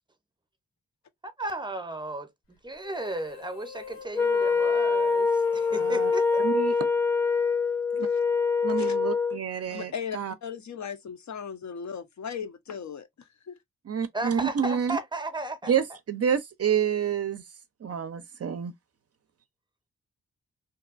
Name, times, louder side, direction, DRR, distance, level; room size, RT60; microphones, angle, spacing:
voice 1, 1.2-2.3 2.6-6.4 14.1-16.0, right 1 dB, 15° right, 0.7 m, -35 dB
sound 1, 2.7-7.5, left 6 dB, 75° left, 1.7 m, -46 dB
Wind instrument woodwind instrument, 4.1-9.4, left 5 dB, 10° left, 0.3 m, -24 dB
voice 2, 5.7-6.1 6.4-6.7 7.9-8.1 8.6-10.3 13.8-15.0 15.7-18.7, right 8 dB, 50° right, 0.5 m, -28 dB
voice 3, 9.7-13.6, left 7 dB, 60° left, 0.6 m, -37 dB
2.7 x 2.2 x 2.4 m
cardioid pair, 45°, 33 cm